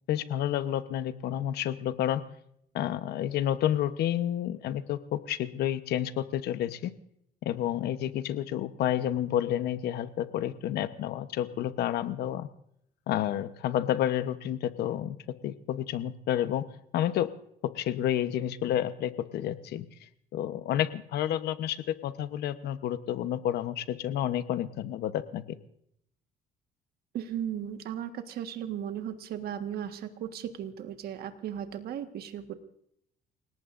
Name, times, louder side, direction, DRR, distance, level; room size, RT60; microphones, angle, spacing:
voice 1, 0.1-2.2 2.7-6.9 7.4-12.5 13.1-15.2 15.4-16.7 16.9-17.3 17.6-25.4, left 11 dB, 75° left, 12 dB, 1.0 m, -30 dB
voice 2, 27.1-32.5, right 9 dB, 65° right, 8 dB, 1.5 m, -36 dB
29.5 x 18.5 x 2.6 m, 0.72 s
cardioid pair, 110°, 17 cm